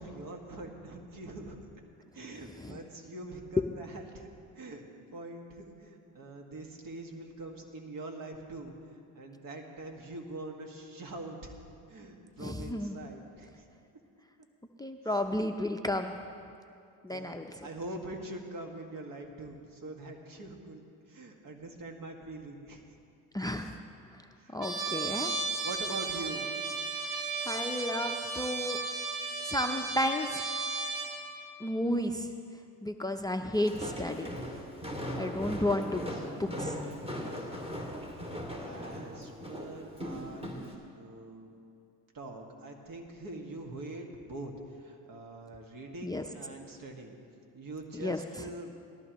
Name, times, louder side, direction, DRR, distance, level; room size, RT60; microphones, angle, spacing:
voice 1, 0.0-1.6 2.1-4.3 4.6-4.8 5.1-11.6 11.9-13.7 15.0-15.3 17.1-22.8 24.4-24.6 25.0-25.2 25.6-26.5 36.1-36.3 38.0-40.5 41.0-41.5 42.1-47.2 47.5-48.7, right 2 dB, 55° right, 3 dB, 1.9 m, -44 dB
voice 2, 12.4-12.9 14.8-16.1 17.0-17.5 23.3-23.8 24.5-25.3 27.4-28.8 29.4-30.4 31.6-32.3 32.8-34.4 35.2-36.0 36.4-36.8 46.0-46.2 47.9-48.2, left 1 dB, 10° left, 6 dB, 0.6 m, -32 dB
Trumpet, 24.6-31.1, right 4 dB, 85° right, 2.7 m, -34 dB
Walk footsteps, 33.5-40.7, equal, 15° right, 2.5 m, -39 dB
18.5 x 13.5 x 3.1 m, 2.5 s
supercardioid pair, 75°, 41 cm